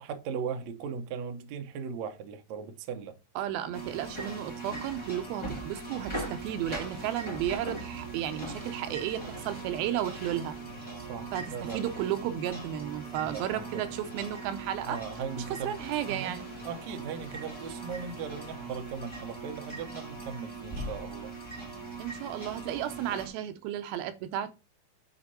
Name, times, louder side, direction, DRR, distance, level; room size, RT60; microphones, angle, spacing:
voice 1, 0.0-3.1 11.1-11.8 13.2-14.0 14.9-16.4 16.6-21.3, right 6 dB, 70° right, 1.8 m, -38 dB
voice 2, 3.4-10.6 11.3-15.0 15.4-16.5 22.0-24.5, right 11 dB, 85° right, 2.5 m, -33 dB
sound 1, 3.7-23.3, right 2 dB, 10° left, 1.4 m, -40 dB
sound 2, 4.3-14.9, right 5 dB, 80° left, 0.5 m, -51 dB
sound 3, 12.9-18.9, right 1 dB, 35° right, 3.8 m, -55 dB
8.1 x 4.4 x 4.1 m
omnidirectional pair, 4.2 m